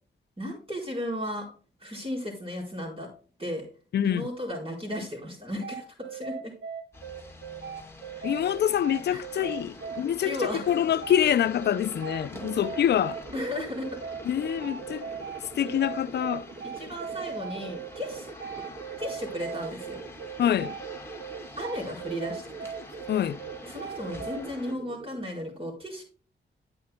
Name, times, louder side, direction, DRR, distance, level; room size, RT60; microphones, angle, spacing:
voice 1, 0.4-1.5 1.8-3.1 3.4-3.7 4.0-6.5 8.2-8.3 9.1-9.2 10.2-10.7 13.3-14.0 16.8-18.3 19.0-20.0 21.6-22.7 23.6-26.0, left 1 dB, 30° right, 4.5 m, -35 dB
voice 2, 3.9-4.3 8.2-13.2 14.3-15.0 15.6-16.5 20.4-20.8 23.1-23.4, left 10 dB, 60° left, 0.4 m, -26 dB
sound 1, 5.6-24.4, right 7 dB, 80° right, 1.2 m, -39 dB
sound 2, 6.9-24.7, left 1 dB, 15° left, 2.1 m, -47 dB
sound 3, 9.4-25.2, right 4 dB, 55° right, 1.7 m, -45 dB
9.7 x 8.6 x 2.2 m
cardioid pair, 60°, 20 cm